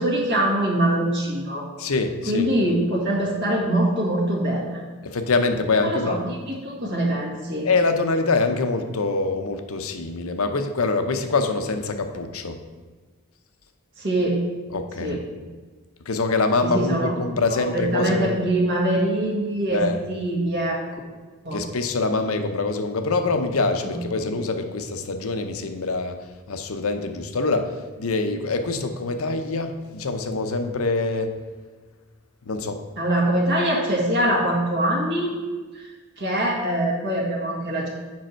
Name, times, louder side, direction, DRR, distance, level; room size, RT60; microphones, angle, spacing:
voice 1, 0.0-1.6 2.3-4.8 5.8-7.7 14.0-14.4 15.0-15.2 16.6-17.1 17.5-20.8 21.4-21.6 23.8-24.0 33.0-35.3 35.7-35.9 36.2-37.9, right 1 dB, 55° right, -3 dB, 1.8 m, -23 dB
voice 2, 1.8-2.5 5.0-6.2 7.6-12.6 14.7-15.2 16.1-18.4 19.7-20.0 21.5-26.2 26.5-27.7 28.0-31.3 32.5-32.8, left 3 dB, 70° left, 7 dB, 0.7 m, -24 dB
7.6 x 5.5 x 4.4 m, 1.4 s
head